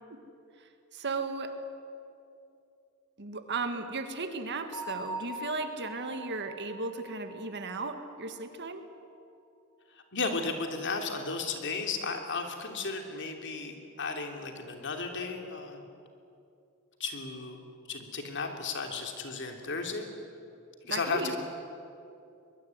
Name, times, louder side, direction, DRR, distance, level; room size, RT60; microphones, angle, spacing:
voice 1, 0.9-1.6 3.2-8.8 20.8-21.4, right 3 dB, 55° right, 8 dB, 2.0 m, -35 dB
Bell, 4.7-8.4, right 1 dB, 20° left, 3.2 m, -42 dB
voice 2, 9.9-15.9 17.0-20.1 20.9-21.4, left 4 dB, 55° left, 4 dB, 3.1 m, -34 dB
23.0 x 21.5 x 9.7 m, 2.6 s
head